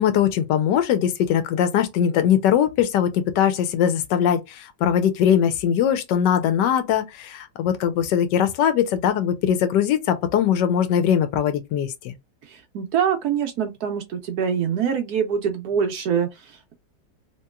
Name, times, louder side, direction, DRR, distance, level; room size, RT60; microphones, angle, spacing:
voice 1, 0.0-12.1, left 9 dB, 75° left, 1.2 m, -21 dB
voice 2, 12.4-16.7, right 7 dB, 70° right, 1.0 m, -25 dB
2.9 x 2.9 x 2.2 m
omnidirectional pair, 2.0 m